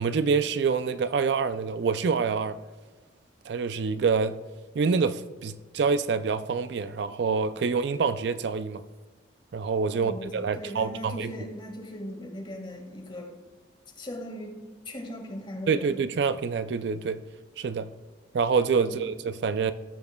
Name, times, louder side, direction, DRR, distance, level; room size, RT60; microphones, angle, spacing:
voice 1, 0.0-2.6 3.5-4.4 4.8-8.8 9.5-11.3 15.7-17.2 17.6-17.9 18.3-19.7, right 5 dB, 60° right, 0.3 m, -26 dB
voice 2, 9.9-10.3 10.5-13.3 14.0-14.6 14.9-16.0 18.8-19.1, equal, 25° left, 1.7 m, -39 dB
17.5 x 7.1 x 2.2 m
head